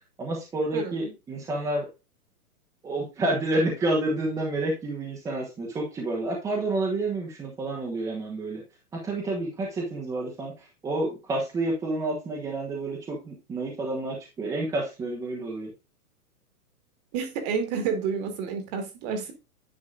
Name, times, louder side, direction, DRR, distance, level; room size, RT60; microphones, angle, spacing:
voice 1, 0.2-1.9 2.8-8.6 8.9-15.7, right 2 dB, 10° right, -2 dB, 1.0 m, -29 dB
voice 2, 0.7-1.1 17.1-19.3, right 6 dB, 30° right, 7 dB, 1.6 m, -30 dB
10.0 x 6.4 x 2.5 m, 0.27 s
hypercardioid pair, 160°, 45 cm